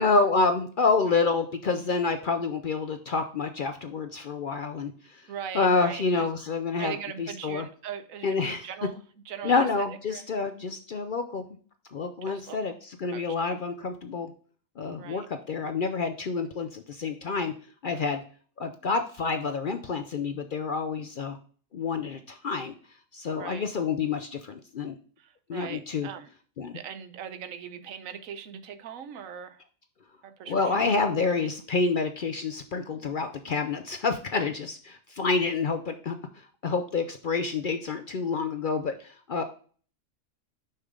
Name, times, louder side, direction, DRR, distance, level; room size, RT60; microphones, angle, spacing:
voice 1, 0.0-5.2 5.5-7.7 8.2-8.7 9.4-11.4 11.9-14.3 14.8-17.5 17.8-18.2 18.6-21.4 21.7-22.7 23.1-25.0 25.5-26.1 26.6-26.7 30.5-36.2 36.6-39.4, left 4 dB, 55° left, 8 dB, 0.6 m, -28 dB
voice 2, 5.3-6.3 6.8-9.0 9.3-10.2 12.3-12.6 13.1-13.2 14.9-15.3 17.9-18.1 23.4-23.6 25.2-26.3 26.7-29.6 30.2-30.8 31.1-31.5, right 8 dB, 85° right, 10 dB, 1.2 m, -40 dB
6.5 x 5.8 x 3.6 m, 0.43 s
omnidirectional pair, 1.4 m